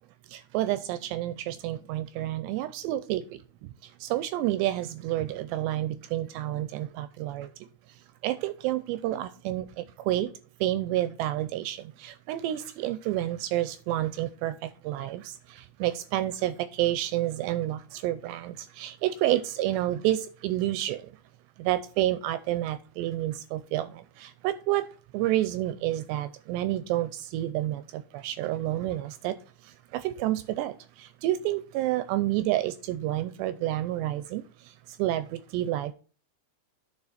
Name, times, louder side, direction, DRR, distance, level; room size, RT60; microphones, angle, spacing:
voice 1, 0.3-3.2 4.0-7.5 8.2-10.3 10.6-21.0 21.6-24.9 25.1-29.4 29.9-34.4 35.0-35.9, right 14 dB, 85° right, 2.6 m, -29 dB
10.5 x 5.0 x 4.1 m
omnidirectional pair, 5.3 m